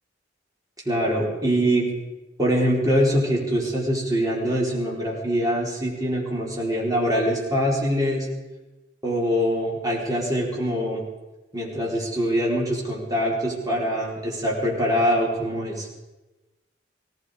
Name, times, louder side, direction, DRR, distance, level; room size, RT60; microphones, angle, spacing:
voice 1, 0.9-1.9 2.4-8.3 9.0-11.0 11.5-15.9, equal, 20° right, -4 dB, 4.1 m, -23 dB
18.0 x 16.0 x 4.9 m, 1.1 s
head